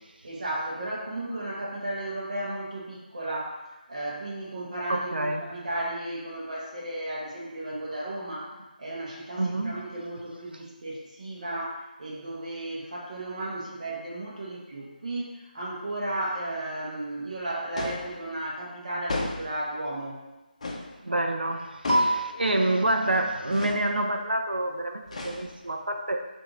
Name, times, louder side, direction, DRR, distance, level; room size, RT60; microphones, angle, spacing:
voice 1, 0.2-3.6 3.9-20.2, right 1 dB, 45° right, -3 dB, 1.0 m, -34 dB
voice 2, 4.9-5.4 9.4-9.8 21.0-26.3, right 1 dB, 80° right, 3 dB, 0.5 m, -27 dB
sound 1, 17.8-18.1 19.1-19.6 20.6-20.9 21.8-22.3 23.5-23.9 25.1-25.7, left 2 dB, 45° left, 0.6 m, -33 dB
5.5 x 2.6 x 3.0 m, 1.1 s
figure-of-eight pair, 160°, 5 cm